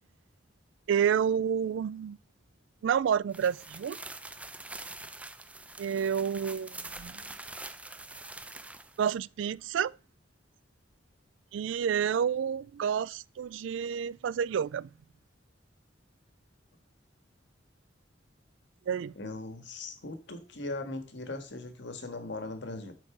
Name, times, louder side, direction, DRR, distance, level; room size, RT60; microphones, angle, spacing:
voice 1, 0.9-2.2 2.8-4.0 5.8-7.2 9.0-9.9 11.5-14.9 18.9-19.1, right 8 dB, 70° right, 0.3 m, -29 dB
sound 1, 3.3-9.1, right 2 dB, 5° right, 0.5 m, -45 dB
voice 2, 19.1-22.9, left 2 dB, 65° left, 1.7 m, -39 dB
8.5 x 4.5 x 6.0 m
head